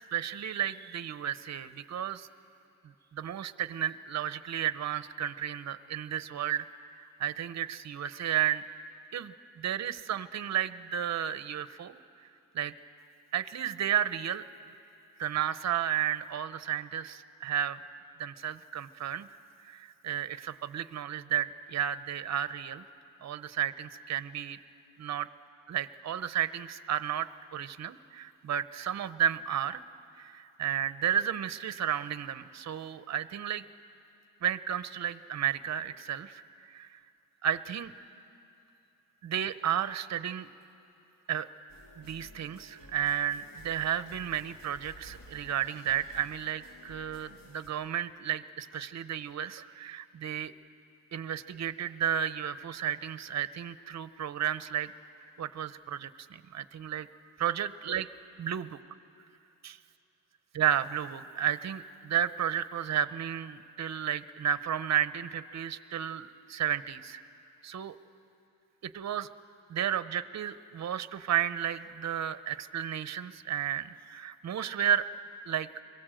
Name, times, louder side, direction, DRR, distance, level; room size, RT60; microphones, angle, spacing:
voice 1, 0.1-2.3 3.1-8.6 9.1-12.0 12.5-12.7 13.3-14.5 15.2-17.8 18.2-19.3 19.6-22.8 23.2-24.6 25.0-25.3 25.7-29.8 30.2-33.6 34.4-37.0 37.4-37.9 39.2-40.5 41.3-41.5 42.0-50.5 51.1-54.9 55.4-57.1 57.4-58.1 58.4-58.7 59.6-59.7 60.5-67.2 67.6-68.0 68.8-69.3 69.7-75.1 75.5-75.7, right 9 dB, 55° right, 14 dB, 0.8 m, -32 dB
sound 1, 41.7-47.7, left 1 dB, 85° left, 3.3 m, -54 dB
26.5 x 22.5 x 7.7 m, 2.7 s
wide cardioid pair, 150°, 33 cm